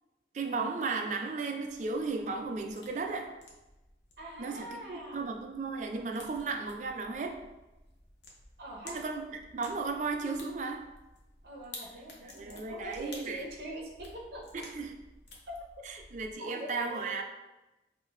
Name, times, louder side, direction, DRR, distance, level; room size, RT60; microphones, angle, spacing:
voice 1, 0.3-3.3 4.4-7.4 8.8-10.8 12.2-13.4 14.5-14.9 15.8-17.2, right 4 dB, 40° right, 3 dB, 0.3 m, -35 dB
sound 1, 1.6-16.3, left 2 dB, 85° left, 0.7 m, -54 dB
voice 2, 4.2-5.2 8.6-9.0 11.4-14.4 15.5-15.6 16.4-17.2, right 1 dB, 60° right, -2 dB, 0.7 m, -43 dB
5.3 x 2.2 x 2.3 m, 1.0 s
head